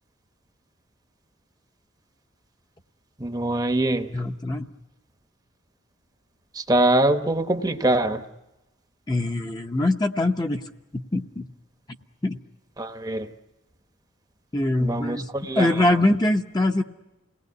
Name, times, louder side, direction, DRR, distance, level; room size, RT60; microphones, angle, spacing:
voice 1, 3.2-4.1 6.6-8.2 12.8-13.3 14.8-15.7, right 1 dB, 20° right, 7 dB, 0.9 m, -23 dB
voice 2, 4.1-4.7 9.1-10.6 10.9-11.5 12.2-12.4 14.5-16.8, left 1 dB, 20° left, 4 dB, 0.8 m, -23 dB
28.5 x 19.0 x 9.5 m, 1.1 s
head